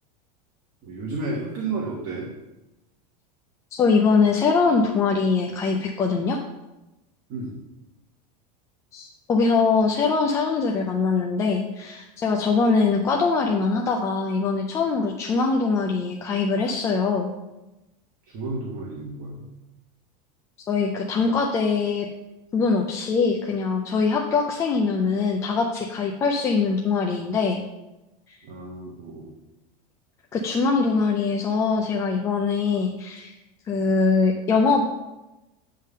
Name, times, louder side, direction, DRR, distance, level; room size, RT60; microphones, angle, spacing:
voice 1, 0.8-2.3 7.3-7.6 18.2-19.5 28.4-29.3, right 3 dB, 40° right, -2 dB, 1.3 m, -32 dB
voice 2, 3.7-6.4 8.9-17.3 20.7-22.1 22.5-27.6 30.3-33.3 33.7-34.8, left 4 dB, 15° left, 1 dB, 0.4 m, -22 dB
8.9 x 3.7 x 6.5 m, 1.0 s
supercardioid pair, 170°, 20 cm